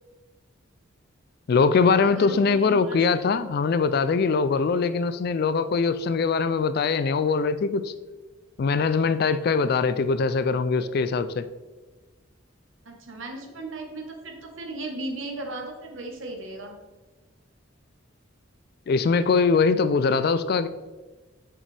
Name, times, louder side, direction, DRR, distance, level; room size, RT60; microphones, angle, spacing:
voice 1, 1.5-7.9 8.6-11.5 18.9-20.7, left 4 dB, 50° left, 13 dB, 0.3 m, -22 dB
voice 2, 2.0-3.2 12.8-16.7, right 2 dB, 70° right, 2 dB, 1.2 m, -36 dB
6.6 x 6.1 x 3.3 m, 1.2 s
head